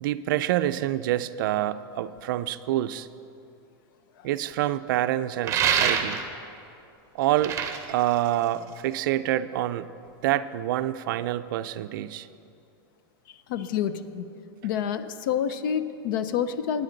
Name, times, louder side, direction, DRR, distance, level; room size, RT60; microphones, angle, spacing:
voice 1, 0.0-3.1 4.2-6.2 7.1-7.6 7.9-9.9 10.2-12.3, right 13 dB, 55° right, 13 dB, 0.4 m, -27 dB
sound 1, 5.4-6.4 7.2-8.9, right 8 dB, 20° right, 0.8 m, -26 dB
voice 2, 13.5-14.3 14.6-16.8, left 8 dB, 55° left, 12 dB, 0.6 m, -28 dB
16.0 x 9.7 x 3.9 m, 2.6 s
supercardioid pair, 160°, 13 cm